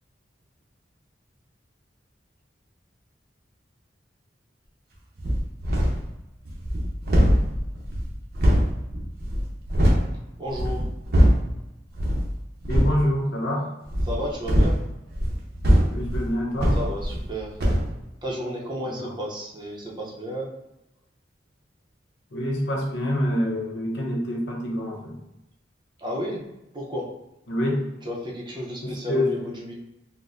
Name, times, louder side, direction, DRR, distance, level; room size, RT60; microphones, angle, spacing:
sound 1, 5.2-6.1 6.4-10.1 10.5-11.5 11.9-12.3 12.6-13.0 13.9-17.3 17.6-17.9, equal, 60° right, 0.7 m, -22 dB
voice 1, 10.4-10.9 14.0-14.8 16.7-17.6 18.2-20.5 26.0-26.4 26.7-27.1 28.0-29.7, equal, 25° right, -3 dB, 0.6 m, -32 dB
voice 2, 12.7-13.7 15.9-16.8 18.8-19.1 22.3-25.2 27.5-27.8 28.8-29.3, left 1 dB, 80° left, -2 dB, 0.8 m, -26 dB
4.0 x 2.1 x 2.5 m, 0.91 s
head